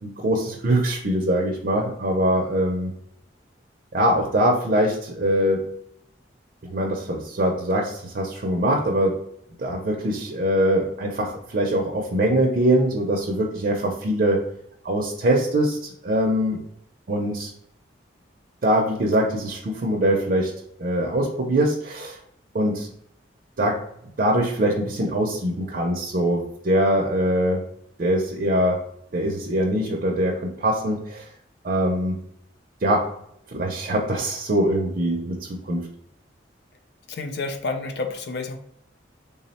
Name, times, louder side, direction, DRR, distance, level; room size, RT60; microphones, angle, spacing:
voice 1, 0.0-2.9 3.9-5.7 6.6-9.2 9.6-14.4 14.8-16.6 17.1-17.5 18.6-20.5 20.8-22.2 22.5-22.9 23.6-23.8 24.2-27.6 28.0-28.8 29.1-31.3 31.6-32.2 32.8-33.1 33.5-35.9, right 1 dB, 45° right, 0 dB, 0.4 m, -23 dB
voice 2, 37.1-38.6, left 3 dB, 55° left, 6 dB, 0.4 m, -29 dB
3.5 x 2.0 x 4.1 m, 0.71 s
head